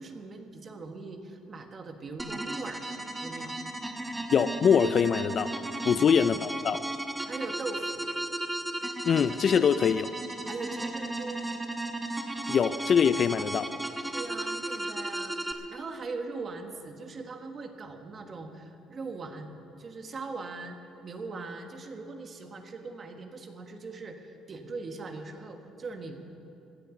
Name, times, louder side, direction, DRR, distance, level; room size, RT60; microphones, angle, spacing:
voice 1, 0.0-2.8 3.2-3.5 5.9-6.1 7.3-8.1 10.5-11.5 13.4-13.5 14.1-19.5 19.8-26.4, right 3 dB, 35° right, 5 dB, 1.3 m, -40 dB
sound 1, 2.2-15.5, right 1 dB, 10° right, 1.0 m, -35 dB
voice 2, 4.3-5.5 5.9-6.8 9.1-10.1 12.5-13.7, left 7 dB, 40° left, 15 dB, 0.3 m, -23 dB
16.0 x 10.0 x 7.1 m, 2.8 s
cardioid pair, 130°, 0 cm